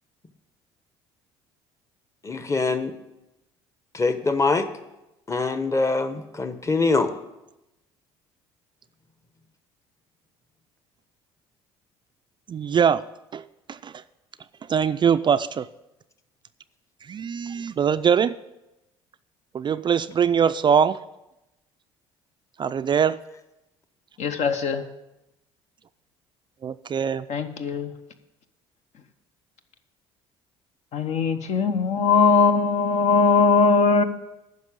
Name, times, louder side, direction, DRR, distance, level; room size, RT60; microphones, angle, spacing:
voice 1, 2.2-2.9 3.9-4.7 5.3-7.1, left 3 dB, 20° left, 10 dB, 1.1 m, -23 dB
voice 2, 12.5-13.0 13.3-13.4 13.7-14.0 14.7-15.7 17.1-18.3 19.5-21.0 22.6-23.2 26.6-27.3, right 7 dB, 35° right, 12 dB, 0.4 m, -22 dB
voice 3, 24.2-24.8 27.3-27.9 30.9-34.0, left 4 dB, 55° left, 8 dB, 1.0 m, -20 dB
9.5 x 6.0 x 8.5 m, 0.94 s
hypercardioid pair, 60°, 14 cm